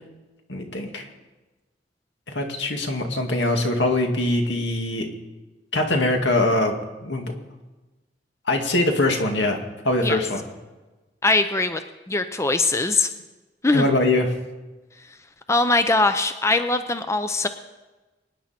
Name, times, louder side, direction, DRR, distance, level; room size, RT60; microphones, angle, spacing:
voice 1, 0.5-1.1 2.3-5.1 5.7-6.7 7.0-7.3 8.5-9.6 9.8-10.4 13.7-14.3, left 2 dB, 80° left, 3 dB, 2.1 m, -22 dB
voice 2, 11.2-11.8 12.1-13.1 13.6-13.8 15.5-17.5, left 2 dB, 15° left, 9 dB, 0.6 m, -21 dB
24.0 x 9.9 x 4.3 m, 1.2 s
head